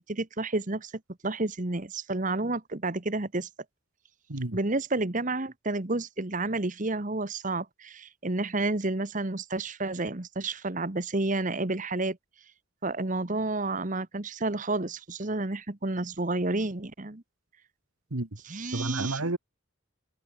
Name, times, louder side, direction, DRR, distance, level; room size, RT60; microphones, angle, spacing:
voice 1, 0.1-0.9 1.2-3.5 4.5-12.2 12.8-17.2 18.4-19.2, right 2 dB, 40° right, 1.3 m, -30 dB
voice 2, 18.7-19.4, right 2 dB, 85° right, 1.9 m, -30 dB
head